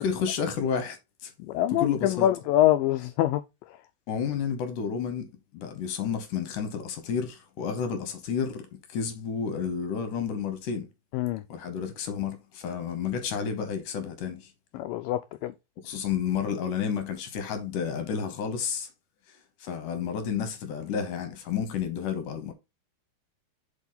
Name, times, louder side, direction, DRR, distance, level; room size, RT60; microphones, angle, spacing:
voice 1, 0.0-1.3 1.7-2.3 4.1-10.9 11.5-14.5 15.8-18.9 19.6-22.5, left 7 dB, 65° left, 2.3 m, -31 dB
voice 2, 1.4-3.4 11.1-11.4 14.7-15.5, left 13 dB, 90° left, 1.9 m, -24 dB
7.2 x 5.5 x 3.9 m
omnidirectional pair, 4.5 m